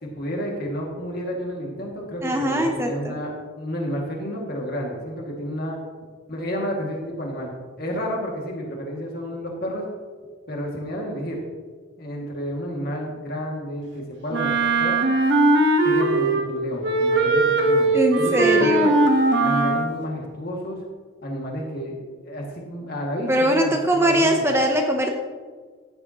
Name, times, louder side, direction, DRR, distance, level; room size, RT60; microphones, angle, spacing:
voice 1, 0.0-5.8 6.3-9.9 10.5-11.4 12.0-14.5 14.8-15.0 15.8-17.9 18.2-18.7 19.4-20.8 21.2-22.0 22.2-24.3, equal, 50° left, -1 dB, 2.1 m, -30 dB
voice 2, 2.2-3.2 17.9-19.0 23.3-25.2, equal, 10° right, 2 dB, 0.7 m, -21 dB
Wind instrument woodwind instrument, 14.3-16.5 16.8-19.9, right 2 dB, 55° right, 1.1 m, -19 dB
13.5 x 9.1 x 2.9 m, 1.6 s
head